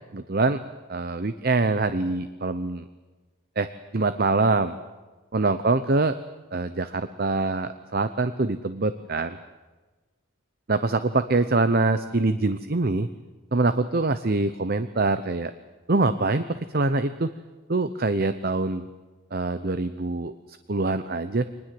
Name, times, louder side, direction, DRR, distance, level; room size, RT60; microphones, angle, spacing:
voice 1, 0.1-0.6 0.9-2.8 3.6-3.7 3.9-4.8 5.3-6.2 6.5-9.4 10.7-13.1 13.5-15.5 15.9-17.3 17.7-18.9 19.3-21.5, right 3 dB, 45° right, 12 dB, 0.8 m, -24 dB
25.0 x 20.0 x 7.8 m, 1.2 s
head